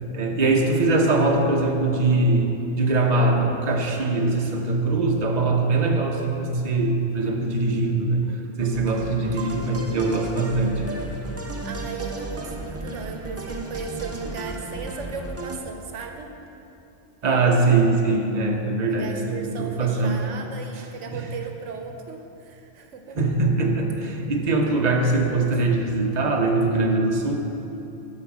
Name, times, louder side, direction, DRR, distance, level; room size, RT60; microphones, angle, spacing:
voice 1, 0.0-10.8 17.2-20.2 20.8-20.9 21.1-21.3 23.1-27.4, right 2 dB, 40° right, 1 dB, 1.0 m, -22 dB
sound 1, 8.6-15.6, right 2 dB, 20° right, 0.4 m, -34 dB
voice 2, 11.6-16.3 18.9-23.2, right 5 dB, 80° right, 4 dB, 1.1 m, -36 dB
11.0 x 5.1 x 7.3 m, 3.0 s
omnidirectional pair, 1.3 m